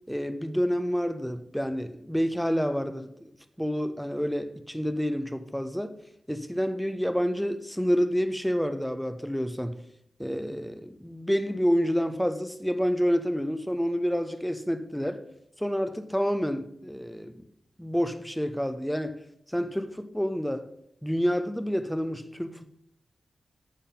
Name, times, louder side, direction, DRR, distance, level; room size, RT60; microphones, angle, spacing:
voice 1, 0.1-3.3 3.6-6.0 6.3-9.8 10.2-15.2 15.6-17.3 17.8-19.2 19.5-20.7 21.0-22.8, equal, ahead, 0.5 m, -28 dB
8.3 x 5.5 x 3.8 m
wide cardioid pair, 140°, 0 cm